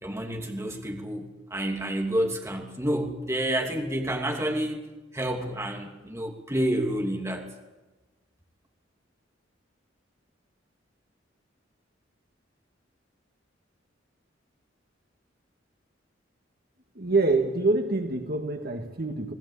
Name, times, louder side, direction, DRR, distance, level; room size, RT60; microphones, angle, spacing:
voice 1, 0.0-4.8 5.1-7.4, right 1 dB, 15° right, 2 dB, 2.8 m, -29 dB
voice 2, 17.0-19.3, right 3 dB, 50° right, 5 dB, 2.0 m, -25 dB
28.5 x 18.5 x 8.5 m, 1.1 s
head